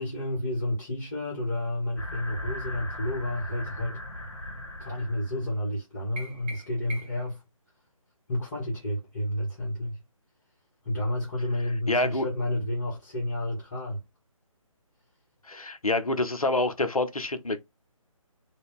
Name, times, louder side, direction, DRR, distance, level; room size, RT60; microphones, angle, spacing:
voice 1, 0.0-4.0 4.8-7.4 8.3-10.0 10.8-14.0, left 1 dB, 30° left, 1.2 m, -31 dB
sound 1, 2.0-5.5, left 1 dB, 50° left, 1.1 m, -38 dB
sound 2, 6.2-7.4, right 1 dB, 15° right, 0.5 m, -42 dB
voice 2, 11.9-12.3 15.5-17.6, left 2 dB, 85° left, 0.6 m, -27 dB
2.6 x 2.2 x 3.6 m
figure-of-eight pair, 150°, 18 cm